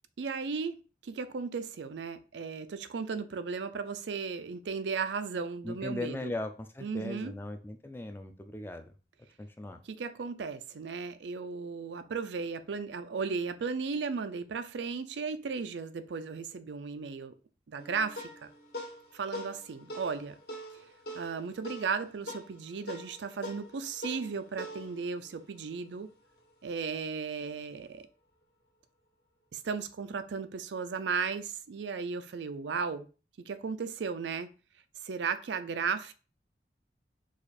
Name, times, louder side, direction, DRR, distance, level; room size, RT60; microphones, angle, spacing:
voice 1, 0.2-0.8 1.0-6.3 6.8-7.3 9.9-17.3 17.7-18.5 19.1-20.4 20.7-20.9 21.1-26.1 26.6-28.1 29.5-33.1 33.4-34.5 35.0-36.1, right 5 dB, 85° right, 0.4 m, -35 dB
voice 2, 5.6-8.9 9.4-9.8, left 2 dB, 10° left, 0.4 m, -38 dB
sound 1, 17.8-26.5, equal, 65° left, 1.5 m, -44 dB
4.8 x 2.4 x 4.2 m
head